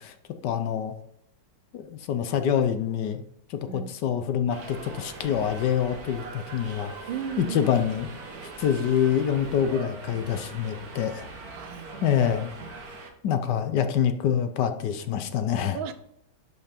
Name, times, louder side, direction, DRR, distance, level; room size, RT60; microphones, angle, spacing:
voice 1, 0.4-0.9 1.7-3.2 3.5-6.9 7.4-8.1 8.6-11.3 12.0-12.5 13.2-15.8, left 8 dB, 70° left, 9 dB, 1.2 m, -26 dB
Subway metro underground, 4.5-13.1, right 3 dB, 55° right, 1.5 m, -41 dB
voice 2, 7.1-7.7 11.5-12.0 15.7-15.9, right 8 dB, 85° right, 10 dB, 1.5 m, -35 dB
10.5 x 5.6 x 4.3 m, 0.76 s
omnidirectional pair, 2.1 m